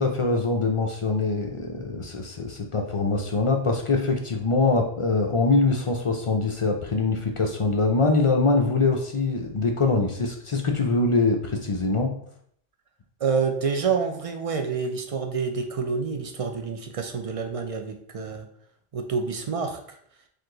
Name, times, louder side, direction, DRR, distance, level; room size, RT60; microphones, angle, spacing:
voice 1, 0.0-12.1, left 3 dB, 45° left, 2 dB, 0.4 m, -23 dB
voice 2, 13.2-18.5 18.9-20.0, right 5 dB, 50° right, 5 dB, 0.4 m, -28 dB
4.6 x 2.5 x 3.8 m, 0.65 s
omnidirectional pair, 1.1 m